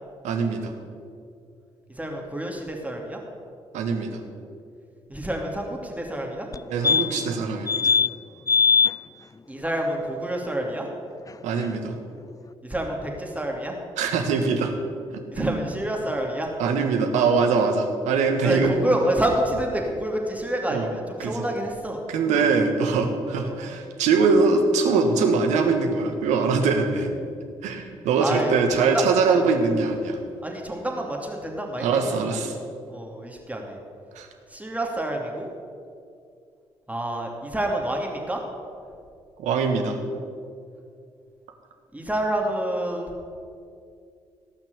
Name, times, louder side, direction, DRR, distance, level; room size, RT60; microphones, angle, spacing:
voice 1, 0.2-0.7 3.7-4.2 6.7-8.0 11.4-12.0 14.0-14.7 15.4-15.6 16.6-18.7 20.7-20.9 21.2-21.4 22.1-27.1 27.6-30.2 31.8-32.5 34.1-34.3 39.4-40.0, right 4 dB, 75° right, 5 dB, 1.5 m, -22 dB
voice 2, 1.9-3.2 5.1-6.5 9.5-10.9 12.6-13.7 15.3-16.5 18.4-22.5 23.4-23.5 28.2-28.5 28.8-29.4 30.4-32.2 32.9-33.8 34.5-35.5 36.9-38.4 41.9-43.1, right 1 dB, 10° right, 0 dB, 2.7 m, -28 dB
sound 1, 6.5-6.6 6.8-7.3 7.7-8.1 8.5-8.9 11.3-11.4 11.6-11.7, left 6 dB, 30° left, 0.5 m, -20 dB
17.0 x 6.0 x 8.2 m, 2.4 s
hypercardioid pair, 45°, 12 cm